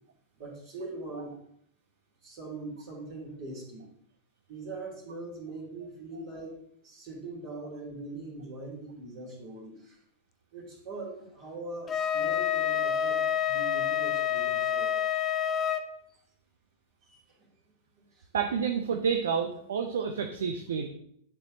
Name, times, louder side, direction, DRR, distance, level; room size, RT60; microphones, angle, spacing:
voice 1, 0.4-1.4 2.2-3.9 4.5-10.0 10.5-15.2 16.1-16.2 17.0-17.5 17.9-18.3, right 2 dB, 45° right, -7 dB, 2.8 m, -42 dB
Wind instrument woodwind instrument, 11.9-15.8, left 9 dB, 25° left, 0.6 m, -28 dB
voice 2, 18.3-20.9, right 6 dB, 65° right, 5 dB, 0.7 m, -29 dB
10.5 x 4.7 x 3.9 m, 0.70 s
figure-of-eight pair, 90°, 0 cm